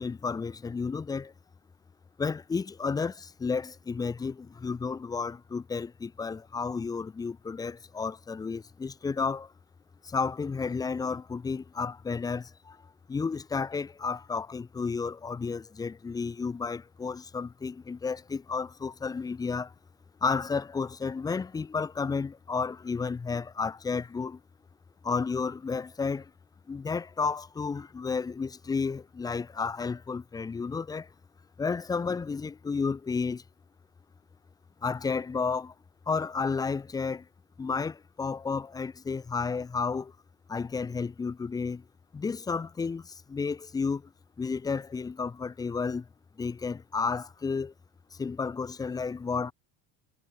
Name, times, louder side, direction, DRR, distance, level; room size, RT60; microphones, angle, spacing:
voice 1, 0.0-1.3 2.2-9.5 10.0-12.8 13.1-19.7 20.2-24.4 25.0-26.3 26.7-31.1 31.6-33.4 34.8-35.7 36.1-37.3 37.6-40.1 40.5-41.8 42.1-44.1 44.4-46.1 46.4-47.7 48.2-49.5, left 5 dB, 10° left, 0.3 m, -32 dB
cardioid pair, 150°, 41 cm